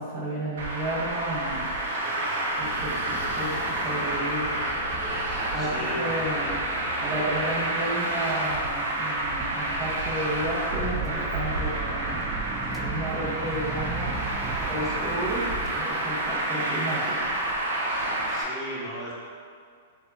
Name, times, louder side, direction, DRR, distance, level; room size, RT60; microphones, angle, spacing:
voice 1, 0.0-1.7 2.6-4.5 5.1-6.6 7.0-12.3 12.7-15.4 15.7-17.3, right 1 dB, 35° right, -7 dB, 1.4 m, -32 dB
Traffic noise roadway noise, 0.6-18.4, right 2 dB, 65° right, 0.7 m, -29 dB
voice 2, 2.0-2.6 5.6-6.6 14.2-15.1 18.2-19.1, equal, 5° left, -9 dB, 1.3 m, -38 dB
sound 1, 2.6-7.7, left 2 dB, 30° left, 0.9 m, -40 dB
sound 2, 6.8-15.8, right 3 dB, 15° right, 0.3 m, -40 dB
4.0 x 2.7 x 4.0 m, 2.1 s
hypercardioid pair, 120°, 0 cm